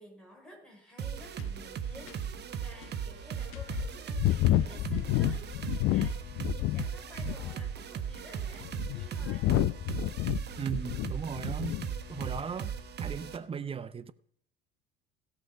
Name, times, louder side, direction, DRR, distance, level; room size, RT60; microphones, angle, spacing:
voice 1, 0.0-9.5, left 1 dB, ahead, 5.3 m, -53 dB
sound 1, 1.0-13.4, right 8 dB, 35° right, 1.2 m, -38 dB
sound 2, 1.4-1.5 2.1-2.2 2.8-2.9 3.5-6.9 7.2-7.7 8.4-11.9 12.1-12.5, left 15 dB, 45° left, 0.5 m, -30 dB
voice 2, 10.6-11.8 12.1-12.7 13.0-14.1, right 6 dB, 20° right, 0.6 m, -37 dB
17.0 x 6.0 x 5.0 m
figure-of-eight pair, 65°, 30 cm